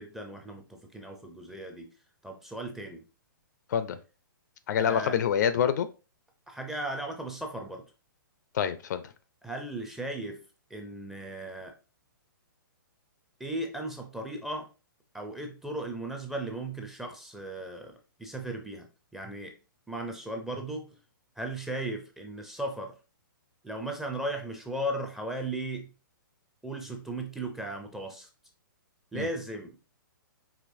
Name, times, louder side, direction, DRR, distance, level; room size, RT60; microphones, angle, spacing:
voice 1, 0.0-1.9 2.2-3.0 4.8-5.2 6.5-7.9 9.4-10.4 10.7-11.7 13.4-14.7 15.1-18.9 19.1-19.5 19.9-21.0 21.4-22.9 23.6-25.9 26.6-28.3 29.1-29.7, right 1 dB, 5° right, 0.4 m, -36 dB
voice 2, 4.7-5.9 8.5-9.1 29.1-29.3, left 8 dB, 55° left, 0.4 m, -26 dB
4.9 x 2.9 x 2.6 m
hypercardioid pair, 150°, 12 cm